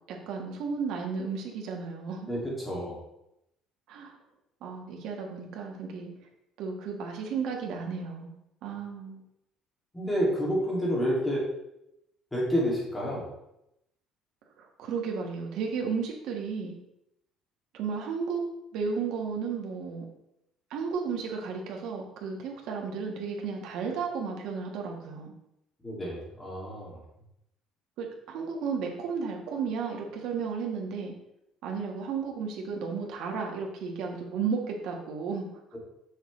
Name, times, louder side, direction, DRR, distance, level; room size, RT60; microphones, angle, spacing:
voice 1, 0.1-2.3 3.9-4.1 4.6-6.1 6.6-8.3 8.6-9.2 14.6-16.7 17.7-18.4 18.7-20.1 20.7-25.3 28.0-31.1 31.6-35.5, right 5 dB, 65° right, 1 dB, 1.4 m, -33 dB
voice 2, 2.3-3.0 9.9-11.4 12.3-13.2 25.8-27.0, equal, 10° left, -5 dB, 2.3 m, -29 dB
6.5 x 6.4 x 3.2 m, 0.83 s
cardioid pair, 155°, 0 cm